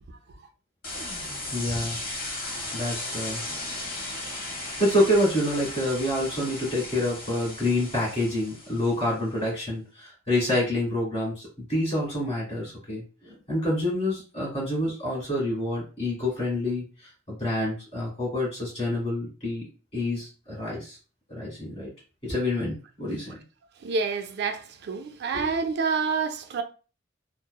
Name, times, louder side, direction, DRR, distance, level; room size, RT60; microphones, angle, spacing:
voice 1, 0.1-0.4 23.8-26.6, right 5 dB, 55° right, 0.3 m, -28 dB
sound 1, 0.8-9.1, left 2 dB, 50° left, 1.0 m, -36 dB
voice 2, 1.5-2.0 2.7-3.4 4.8-16.8 17.3-19.6 19.9-21.0 21.3-21.9 22.2-23.4 25.3-25.6, left 1 dB, 30° left, 1.5 m, -27 dB
2.8 x 2.0 x 2.2 m
head